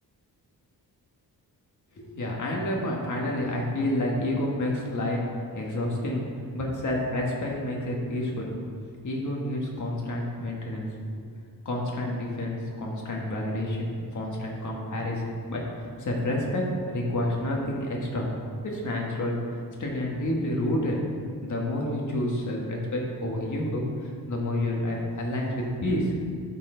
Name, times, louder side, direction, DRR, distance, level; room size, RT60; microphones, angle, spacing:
voice 1, 2.0-5.2 5.5-6.2 6.5-8.5 9.0-11.2 11.6-18.3 18.6-19.4 19.8-21.0 21.4-26.4, left 1 dB, 50° left, -2 dB, 1.5 m, -29 dB
11.5 x 4.4 x 3.8 m, 2.1 s
wide cardioid pair, 150°, 39 cm